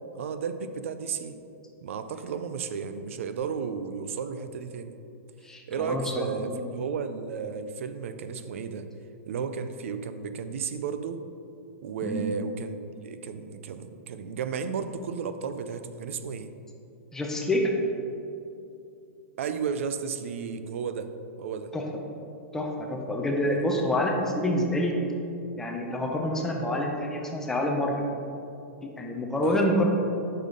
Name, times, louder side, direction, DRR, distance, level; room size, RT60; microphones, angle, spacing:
voice 1, 0.1-1.4 1.8-5.0 5.7-8.9 9.3-11.2 11.8-12.8 13.0-16.5 19.4-21.1 21.4-21.7 29.4-29.7, right 6 dB, 65° right, 10 dB, 0.5 m, -33 dB
voice 2, 5.4-6.7 12.0-12.2 17.1-17.7 21.7-21.8 22.5-25.0 25.6-27.9 29.0-29.9, left 1 dB, 5° left, 1 dB, 0.5 m, -27 dB
7.4 x 5.6 x 3.8 m, 2.7 s
hypercardioid pair, 165°, 8 cm